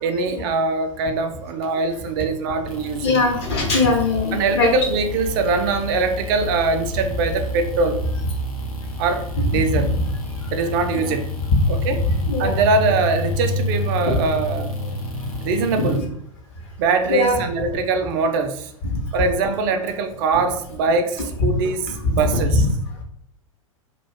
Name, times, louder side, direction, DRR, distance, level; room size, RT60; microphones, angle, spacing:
voice 1, 0.0-3.2 4.3-8.0 9.0-10.0 10.5-11.3 11.7-12.0 12.4-14.7 15.4-16.0 16.8-18.7 19.1-22.7, right 4 dB, 40° right, 0.4 m, -22 dB
sound 1, 2.6-16.0, left 2 dB, 85° left, 0.7 m, -29 dB
voice 2, 3.0-4.7 10.9-11.1 11.5-11.6 12.3-12.6 14.1-14.2 17.1-17.4, left 3 dB, 50° left, 0.7 m, -20 dB
2.3 x 2.2 x 3.2 m
figure-of-eight pair, 95°, 18 cm